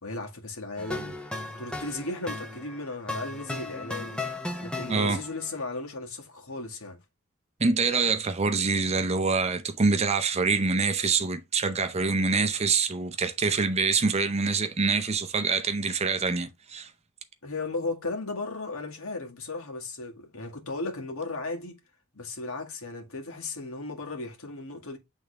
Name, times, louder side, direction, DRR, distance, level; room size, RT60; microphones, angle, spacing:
voice 1, 0.0-1.2 1.6-4.2 4.6-7.0 17.4-21.8 22.1-25.0, left 3 dB, 70° left, 1.8 m, -35 dB
sound 1, 0.8-5.5, left 2 dB, 5° left, 0.8 m, -36 dB
voice 2, 4.9-5.2 7.6-16.9, right 4 dB, 30° right, 0.6 m, -25 dB
8.4 x 3.6 x 3.3 m
head